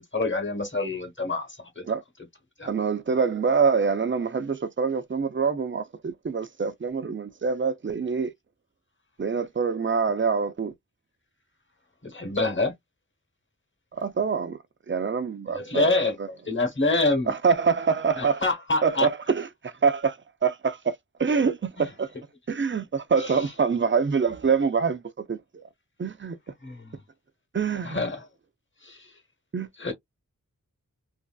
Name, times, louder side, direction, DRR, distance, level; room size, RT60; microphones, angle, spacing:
voice 1, 0.0-1.5 1.8-1.9 2.6-2.7 12.0-12.7 15.5-16.2 16.5-17.3 18.1-19.1 21.8-21.9 23.2-23.6 26.6-26.9 27.8-28.2 28.8-29.0 29.8-29.9, left 2 dB, 35° left, 1.1 m, -26 dB
voice 2, 2.7-8.3 9.2-10.7 13.9-14.6 14.9-16.3 17.3-18.4 18.8-20.9 21.2-22.1 22.5-25.6 26.0-26.4 27.5-28.0 29.5-29.7, right 5 dB, 35° right, 0.5 m, -25 dB
3.2 x 2.6 x 2.3 m
wide cardioid pair, 75°, 33 cm